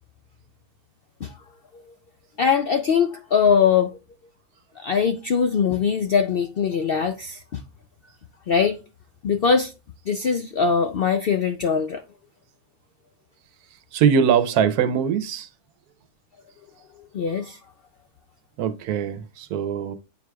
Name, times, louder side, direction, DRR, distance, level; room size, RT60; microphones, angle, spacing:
voice 1, 2.4-3.9 4.8-7.6 8.5-8.8 9.2-9.7 10.1-12.0 17.1-17.6, left 6 dB, 70° left, 0.5 m, -21 dB
voice 2, 13.9-15.5 18.6-20.0, right 7 dB, 85° right, 1.2 m, -21 dB
8.8 x 4.7 x 2.2 m
omnidirectional pair, 1.6 m